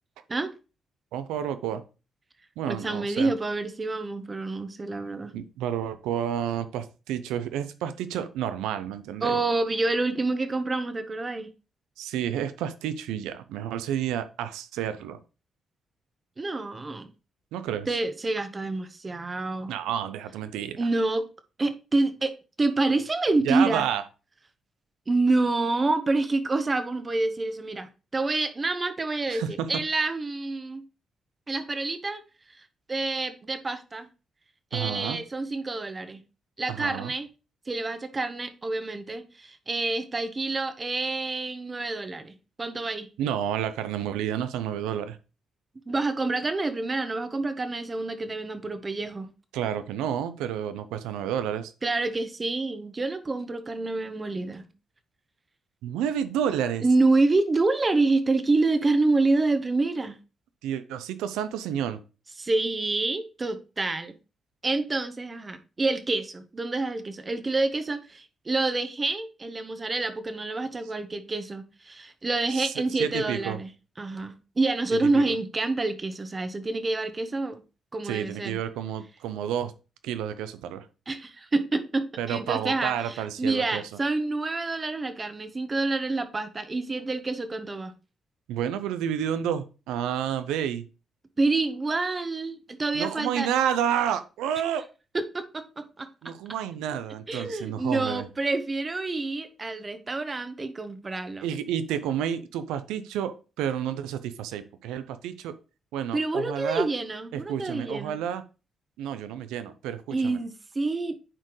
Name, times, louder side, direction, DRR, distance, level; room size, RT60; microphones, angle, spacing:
voice 1, 1.1-1.8 2.6-3.3 5.3-9.4 12.0-15.2 17.5-17.9 19.7-20.9 23.4-24.0 29.3-29.7 34.7-35.2 36.7-37.1 43.2-45.2 49.5-51.7 55.8-56.8 60.6-62.0 72.5-73.6 74.9-75.4 78.0-79.7 80.0-80.9 82.2-84.0 88.5-90.9 92.9-94.8 96.2-98.3 101.4-105.5 105.9-106.9 107.3-108.4 109.0-110.4, right 9 dB, 90° right, 0.6 m, -30 dB
voice 2, 2.7-5.3 9.2-11.5 16.4-17.1 17.9-19.7 20.8-21.2 21.6-23.9 25.1-29.4 29.7-30.8 31.5-32.2 32.5-34.1 34.7-36.2 36.6-37.3 37.7-42.3 42.6-43.1 45.9-49.3 51.8-54.7 56.8-60.2 62.4-64.1 64.6-73.7 74.0-77.6 77.9-78.6 81.1-87.9 91.4-93.5 95.3-96.1 97.3-101.4 106.1-108.2 110.1-111.1, right 3 dB, 35° right, 1.1 m, -27 dB
9.8 x 4.4 x 3.1 m
supercardioid pair, 55°, 0 cm